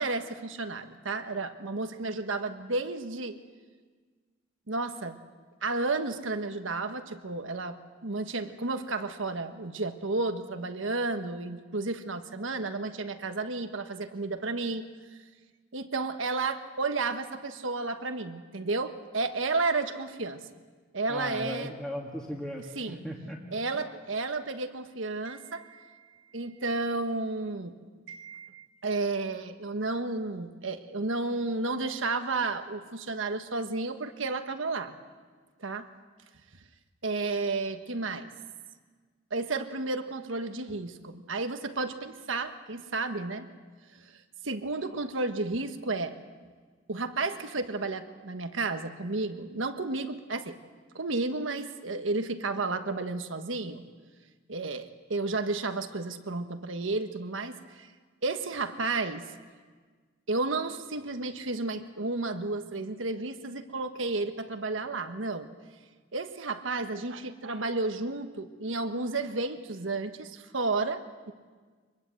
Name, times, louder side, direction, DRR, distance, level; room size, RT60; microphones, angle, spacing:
voice 1, 0.0-3.4 4.7-5.2 5.6-7.8 8.0-14.8 15.7-20.4 20.9-21.7 22.8-23.0 23.5-26.0 26.3-27.7 28.1-35.0 35.6-35.9 37.0-38.3 39.3-43.5 44.4-46.1 46.9-50.6 50.9-53.8 54.5-57.9 58.2-59.2 60.3-65.5 66.1-71.3, right 3 dB, 85° right, 7 dB, 1.4 m, -32 dB
voice 2, 21.1-23.4 23.7-23.9, equal, 5° left, -2 dB, 1.9 m, -37 dB
24.5 x 21.5 x 7.8 m, 1.5 s
head